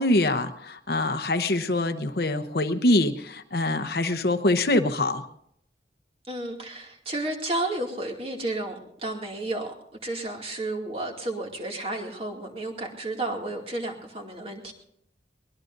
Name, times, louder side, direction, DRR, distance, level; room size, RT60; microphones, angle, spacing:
voice 1, 0.0-5.2, left 2 dB, 60° left, 9 dB, 0.9 m, -24 dB
voice 2, 6.3-9.7 10.0-14.7, right 2 dB, 30° right, 1 dB, 2.4 m, -32 dB
23.0 x 20.0 x 2.6 m, 0.73 s
head